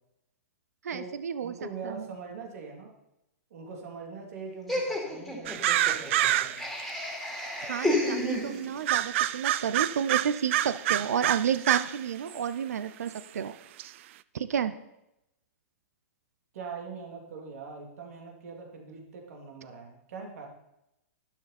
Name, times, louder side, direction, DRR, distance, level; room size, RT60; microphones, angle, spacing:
voice 1, 0.8-1.5 1.8-2.0 7.6-13.6 14.3-14.8, right 8 dB, 90° right, 13 dB, 0.7 m, -30 dB
voice 2, 1.4-2.9 3.5-6.7 16.5-20.5, right 4 dB, 70° right, 1 dB, 3.1 m, -42 dB
Laughter, 4.7-8.9, left 1 dB, ahead, 2.9 m, -31 dB
sound 1, 5.5-6.8 7.4-7.5 8.9-12.0 12.3-12.4 13.2-13.3 13.8-13.9, right 13 dB, 55° right, 0.4 m, -27 dB
12.0 x 11.5 x 4.3 m, 0.86 s
hypercardioid pair, 145°, 8 cm